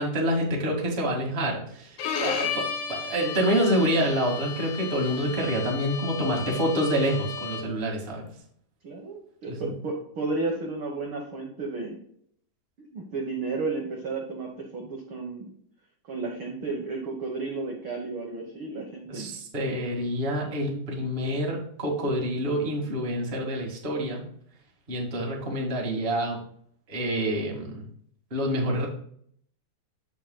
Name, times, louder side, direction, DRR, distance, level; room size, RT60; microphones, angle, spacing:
voice 1, 0.0-2.6 2.9-8.2 9.5-9.7 19.1-24.2 24.9-26.4 26.9-27.8 28.3-28.9, equal, 25° right, -1 dB, 1.3 m, -27 dB
Bowed string instrument, 2.0-7.8, left 5 dB, 80° left, 2.9 m, -33 dB
voice 2, 8.8-12.0 12.9-15.6 16.1-19.3 20.4-20.5, right 3 dB, 65° right, 0 dB, 1.2 m, -33 dB
8.6 x 7.4 x 2.2 m, 0.64 s
omnidirectional pair, 4.0 m